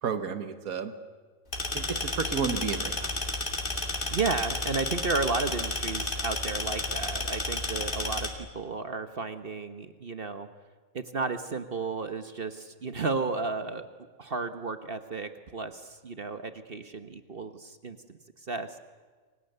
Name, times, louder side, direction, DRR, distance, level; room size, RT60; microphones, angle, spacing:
voice 1, 0.0-0.9 1.7-3.1, right 6 dB, 80° right, 9 dB, 1.8 m, -32 dB
sound 1, 1.5-8.3, left 2 dB, 35° left, 2.7 m, -32 dB
voice 2, 3.9-10.5 10.9-13.9 14.2-18.0 18.4-18.8, right 4 dB, 45° right, 9 dB, 1.2 m, -33 dB
29.0 x 24.5 x 6.8 m, 1.4 s
omnidirectional pair, 1.5 m